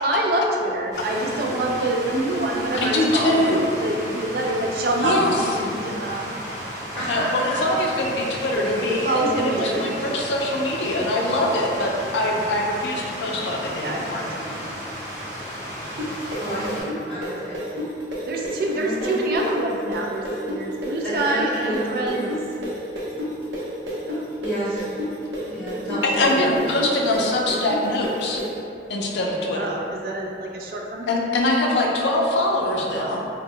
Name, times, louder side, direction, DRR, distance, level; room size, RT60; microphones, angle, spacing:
voice 1, 0.0-3.5 3.8-6.4 8.5-10.2 13.7-14.8 18.3-22.3 24.0-24.2 29.5-31.2, right 2 dB, 55° right, 0 dB, 0.3 m, -26 dB
Stream, 0.9-16.8, equal, 20° right, 0.7 m, -34 dB
voice 2, 2.7-3.6 5.0-5.3 7.1-14.6 26.2-28.4 28.9-29.8 31.1-33.2, left 1 dB, 85° left, 0 dB, 0.4 m, -23 dB
voice 3, 5.0-5.3 6.9-7.8 8.5-8.6 9.5-9.7 12.3-12.4 16.4-17.6 18.7-19.2 21.0-22.3 24.4-24.9 25.5-26.5 32.6-33.2, equal, 15° left, -15 dB, 0.8 m, -31 dB
sound 1, 16.0-23.6 23.9-28.5, left 1 dB, 85° right, 0.6 m, -29 dB
2.1 x 2.0 x 3.7 m, 2.5 s
head